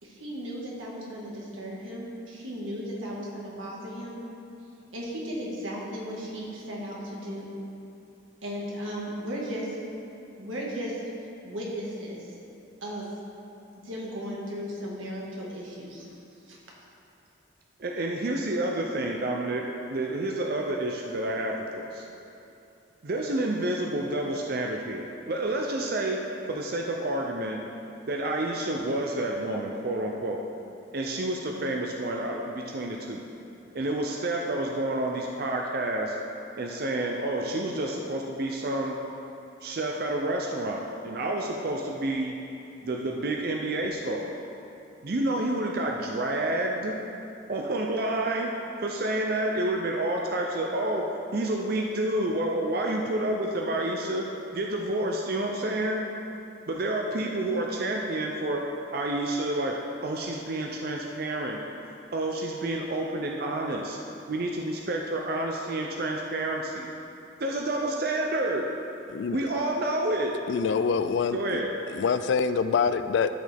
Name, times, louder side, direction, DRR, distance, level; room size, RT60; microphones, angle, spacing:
voice 1, 0.0-4.2 4.9-7.5 8.4-9.8 10.4-11.0 11.4-12.3 12.8-13.0 13.8-16.1 16.5-16.6, equal, 85° right, -4 dB, 1.7 m, -36 dB
voice 2, 17.8-22.1 23.0-26.2 26.5-27.6 28.1-30.4 30.9-33.2 33.7-36.2 36.5-39.0 39.6-42.3 42.8-44.3 45.0-46.9 47.5-48.5 48.8-54.2 54.5-56.0 56.7-58.6 58.9-61.6 62.1-64.0 64.3-66.9 67.4-68.7 69.3-70.4 71.3-71.7, right 1 dB, 50° right, 0 dB, 0.5 m, -29 dB
voice 3, 70.5-71.6 71.9-73.3, left 5 dB, 65° left, 11 dB, 0.3 m, -25 dB
12.5 x 5.3 x 3.5 m, 2.8 s
head